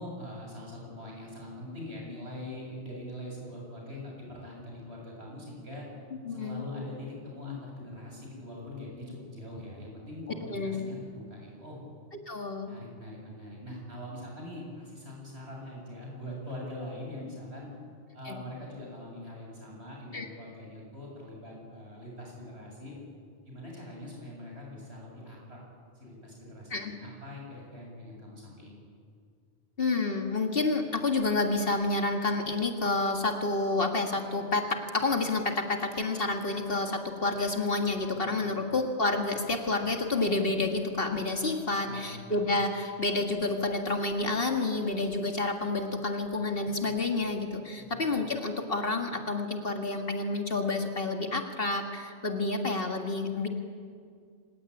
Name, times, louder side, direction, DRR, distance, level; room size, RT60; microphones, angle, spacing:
voice 1, 0.0-5.9 6.3-11.8 12.6-17.7 18.1-22.9 23.5-25.6 25.9-28.8 38.0-38.6 41.8-42.2 47.8-48.1, left 1 dB, 60° right, -2 dB, 8.1 m, -43 dB
voice 2, 6.3-6.6 10.5-11.0 12.3-12.7 18.3-18.4 20.1-20.3 26.7-26.9 29.8-53.5, left 3 dB, 50° left, 4 dB, 2.1 m, -29 dB
26.5 x 17.0 x 9.9 m, 2.1 s
omnidirectional pair, 1.2 m